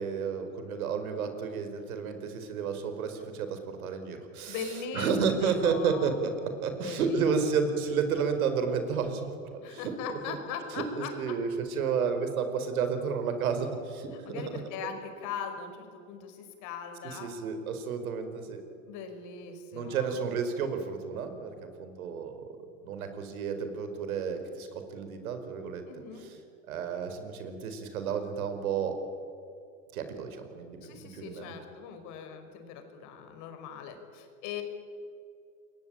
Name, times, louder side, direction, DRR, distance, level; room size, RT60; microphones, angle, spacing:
voice 1, 0.0-4.6 4.9-6.3 6.6-9.3 9.7-9.9 10.3-10.4 10.8-14.1 17.1-18.6 19.7-22.4 22.8-25.8 26.2-26.3 26.7-28.9 29.9-31.5, right 6 dB, 75° right, 8 dB, 4.9 m, -31 dB
voice 2, 4.5-5.2 5.4-6.1 6.7-7.3 9.6-11.4 14.1-17.3 18.9-20.2 25.9-26.3 30.8-34.6, left 7 dB, 45° left, 6 dB, 5.2 m, -40 dB
28.0 x 22.0 x 8.9 m, 2.4 s
supercardioid pair, 130°, 43 cm